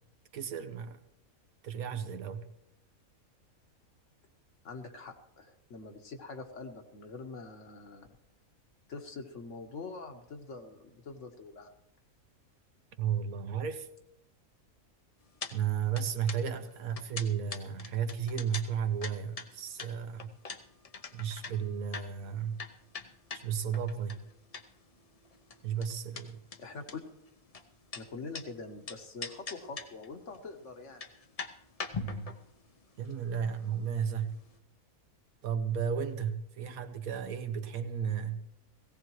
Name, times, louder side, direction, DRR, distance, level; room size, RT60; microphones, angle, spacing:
voice 1, 0.3-1.0 1.6-2.5 13.0-13.9 15.5-20.4 21.1-22.6 23.3-24.2 25.6-26.4 32.0-32.4 33.0-34.4 35.4-38.5, right 7 dB, 85° right, 1.4 m, -34 dB
voice 2, 4.6-8.1 8.9-11.7 26.6-27.0 27.9-31.0, left 3 dB, 60° left, 1.5 m, -44 dB
sound 1, 15.4-15.6 15.8-24.9 25.2-28.5 28.9-30.1 30.3-30.4 30.8-34.2 34.5-34.6, left 5 dB, 40° left, 0.6 m, -42 dB
17.5 x 16.5 x 3.1 m
omnidirectional pair, 1.5 m